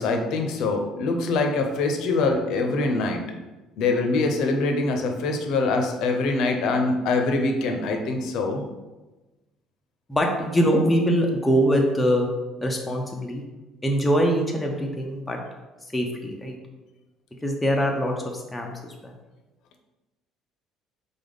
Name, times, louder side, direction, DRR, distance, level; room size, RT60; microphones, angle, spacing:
voice 1, 0.0-3.2 3.8-8.6, left 3 dB, 55° left, 3 dB, 0.6 m, -24 dB
voice 2, 10.1-12.3 12.6-13.4 13.8-15.4 15.9-16.6 17.4-18.9, equal, 5° left, 0 dB, 0.4 m, -23 dB
3.9 x 3.4 x 3.9 m, 1.1 s
cardioid pair, 180°, 0 cm